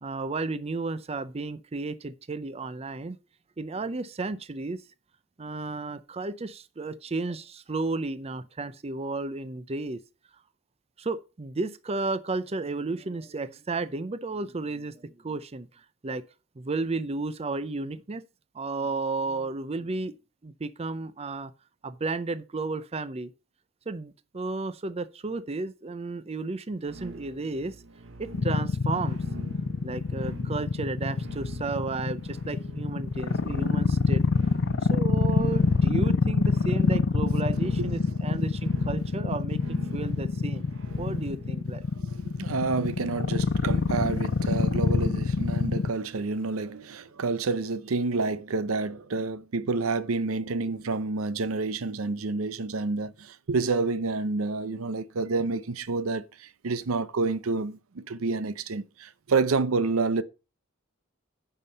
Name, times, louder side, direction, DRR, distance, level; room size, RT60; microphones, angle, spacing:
voice 1, 0.0-3.2 3.6-4.8 5.4-10.0 11.0-16.2 16.6-18.2 18.5-20.1 20.4-21.5 21.8-23.3 23.9-27.8 28.2-29.2 29.8-34.2 34.8-40.7 41.0-41.9, right 3 dB, 30° right, 0.5 m, -33 dB
sound 1, 26.8-41.6, right 1 dB, 65° right, 1.0 m, -45 dB
sound 2, 28.3-45.9, left 4 dB, 55° left, 0.5 m, -25 dB
voice 2, 42.0-60.2, right 3 dB, 85° right, 0.7 m, -29 dB
9.8 x 5.5 x 5.4 m
head